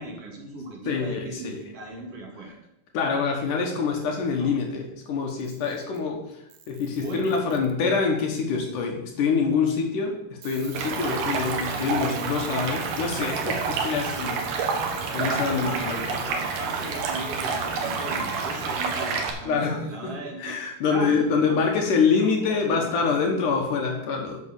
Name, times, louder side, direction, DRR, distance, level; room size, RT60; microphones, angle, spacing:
voice 1, 0.0-2.6 4.3-4.5 7.0-7.4 15.2-20.6 20.9-21.8 22.2-23.2, right 2 dB, 45° right, -1 dB, 2.7 m, -37 dB
voice 2, 0.9-1.6 2.9-6.2 6.7-14.4 15.1-16.2 19.4-20.1 20.4-24.4, left 5 dB, 65° left, 1 dB, 2.5 m, -25 dB
Camera, 5.3-6.1 6.5-8.0 10.4-19.1, right 9 dB, 70° right, 2.1 m, -46 dB
Stream, 10.7-19.3, right 5 dB, 90° right, 3.2 m, -29 dB
8.7 x 6.3 x 7.0 m, 0.84 s
omnidirectional pair, 4.3 m